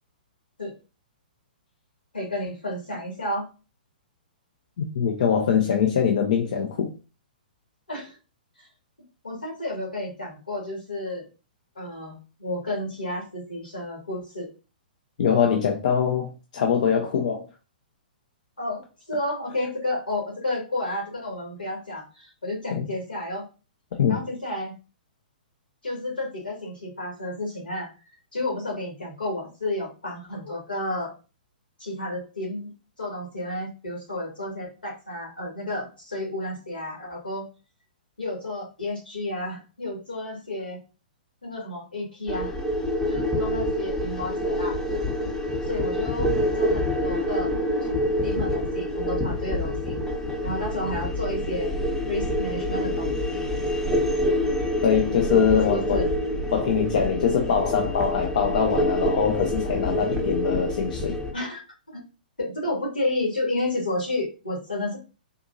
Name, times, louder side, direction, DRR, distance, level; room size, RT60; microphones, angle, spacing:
voice 1, 2.1-3.5 7.9-8.2 8.6-8.7 9.2-11.3 11.8-14.5 18.6-18.8 19.1-23.5 24.1-24.7 25.8-27.9 28.3-31.1 31.8-32.7 33.0-37.4 38.2-40.8 41.4-42.5 43.1-44.8 45.6-47.5 48.2-50.0 50.4-51.8 52.1-53.5 55.3-56.1 61.3-61.6 61.9-62.0 62.4-65.0, left 1 dB, 80° left, 1.9 m, -31 dB
voice 2, 4.8-6.9 15.2-17.4 22.7-22.9 24.0-24.2 54.8-56.0 56.5-61.2, left 7 dB, 55° left, 0.6 m, -23 dB
sound 1, 42.3-61.3, left 1 dB, 5° left, 0.8 m, -27 dB
3.7 x 2.7 x 2.6 m
figure-of-eight pair, 115°, 5 cm